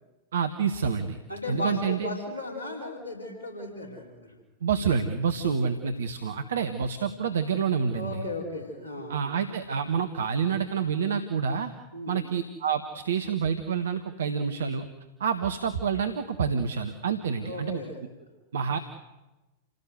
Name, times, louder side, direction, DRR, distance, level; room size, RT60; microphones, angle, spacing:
voice 1, 0.3-1.2 1.5-2.1 4.6-8.3 9.1-11.7 12.1-14.8 15.2-17.8 18.5-18.8, right 6 dB, 65° right, 8 dB, 1.4 m, -28 dB
voice 2, 1.3-4.4 7.9-9.2 11.9-12.2 17.4-18.0, left 2 dB, 90° right, 1 dB, 4.8 m, -35 dB
29.0 x 17.5 x 8.1 m, 1.1 s
figure-of-eight pair, 90°, 0 cm